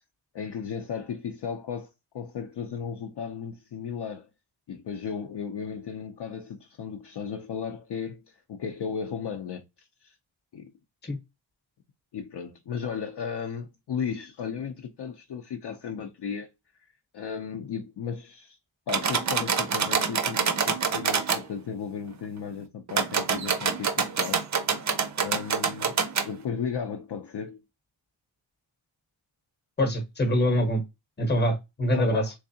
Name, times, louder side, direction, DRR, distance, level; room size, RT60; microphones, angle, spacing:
voice 1, 0.3-4.3 4.7-10.1 10.5-10.7 12.1-16.5 17.1-18.6 18.9-24.4 25.2-26.0 26.2-27.6 31.9-32.3, left 7 dB, 55° left, 0.5 m, -35 dB
sound 1, 18.9-21.4 22.9-26.3, right 6 dB, 35° right, 0.5 m, -26 dB
voice 2, 29.8-30.8 31.2-32.3, equal, 20° left, 0.9 m, -24 dB
3.5 x 3.3 x 2.6 m
wide cardioid pair, 180°, 50 cm